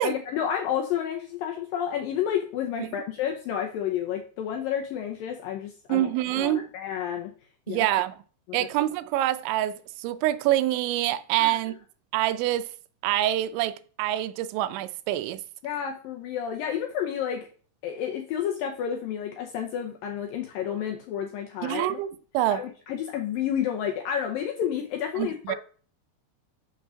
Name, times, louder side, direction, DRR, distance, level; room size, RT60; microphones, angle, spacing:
voice 1, 0.0-6.1 6.3-7.3 7.7-8.0 8.5-8.6 11.4-11.6 15.6-17.5 17.8-22.0 22.5-25.6, left 9 dB, 80° left, 2.0 m, -30 dB
voice 2, 5.9-6.6 7.7-8.2 8.5-11.8 12.1-12.7 13.0-15.4 21.6-22.1 22.3-22.6 25.2-25.6, right 14 dB, 90° right, 3.0 m, -26 dB
7.0 x 6.1 x 6.2 m
omnidirectional pair, 5.1 m